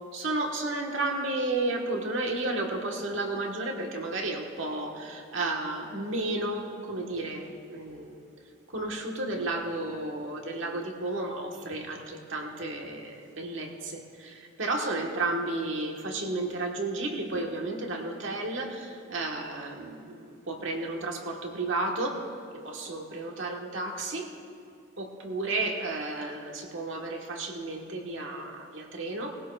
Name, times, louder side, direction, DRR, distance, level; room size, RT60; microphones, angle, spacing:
voice 1, 0.1-8.2 8.7-22.2 22.5-24.3 25.0-29.3, right 2 dB, 70° right, 1 dB, 1.5 m, -32 dB
19.5 x 16.0 x 2.5 m, 2.3 s
head